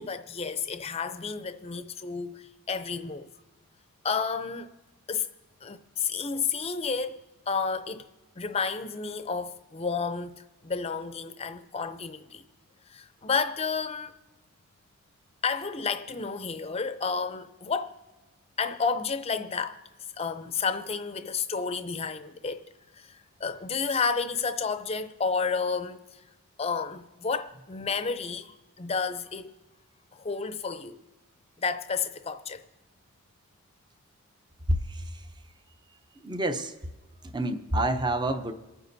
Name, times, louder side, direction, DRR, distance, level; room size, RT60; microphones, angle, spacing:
voice 1, 0.0-3.3 4.0-4.7 5.1-5.3 5.6-7.2 7.5-8.1 8.4-12.4 12.9-14.2 15.4-17.9 18.6-19.8 20.1-22.7 22.9-26.0 26.6-29.5 30.1-31.0 31.6-32.6, left 5 dB, 25° left, 0.5 m, -31 dB
voice 2, 34.7-35.2 36.2-36.7 37.3-38.5, right 1 dB, 20° right, 0.6 m, -28 dB
28.0 x 9.5 x 2.7 m
head